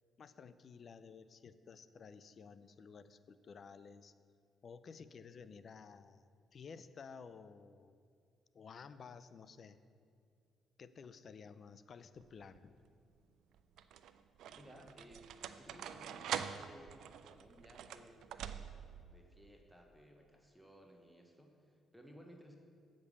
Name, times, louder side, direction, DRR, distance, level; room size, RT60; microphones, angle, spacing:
voice 1, 0.2-4.1 4.6-8.0 8.5-9.8 10.8-12.7, left 5 dB, 50° left, 13 dB, 0.4 m, -54 dB
sound 1, 12.2-12.7 13.5-19.0, right 9 dB, 80° right, 0.3 m, -45 dB
voice 2, 14.5-18.2 18.7-22.6, equal, ahead, 2 dB, 1.0 m, -59 dB
8.0 x 5.2 x 7.1 m, 2.3 s
cardioid pair, 90°, 0 cm